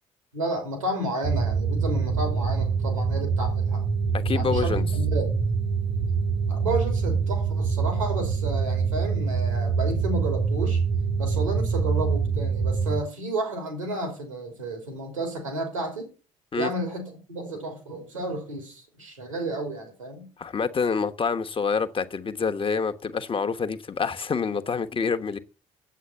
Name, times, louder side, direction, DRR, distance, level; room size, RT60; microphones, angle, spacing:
voice 1, 0.3-3.8 4.3-5.3 6.5-10.8 11.2-16.1 16.5-20.3, right 2 dB, 85° right, 2.9 m, -31 dB
sound 1, 1.2-13.0, right 5 dB, 55° right, 1.5 m, -25 dB
voice 2, 4.1-4.8 16.5-16.7 20.4-25.4, left 5 dB, 35° left, 1.2 m, -27 dB
9.4 x 8.2 x 5.6 m
figure-of-eight pair, 50°, 16 cm